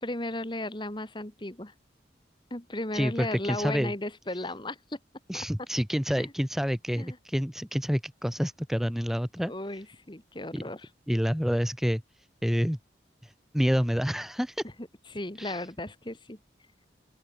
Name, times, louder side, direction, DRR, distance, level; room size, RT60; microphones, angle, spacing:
voice 1, 0.0-1.7 2.5-5.0 5.3-5.4 6.2-6.3 7.0-7.2 9.4-10.9 14.6-14.7 15.1-16.4, left 1 dB, 25° left, 2.7 m, -35 dB
voice 2, 2.9-3.9 5.3-9.5 10.5-10.6 11.1-12.0 12.4-12.8 13.2-14.6 15.4-15.7, equal, ahead, 1.1 m, -28 dB
open air
head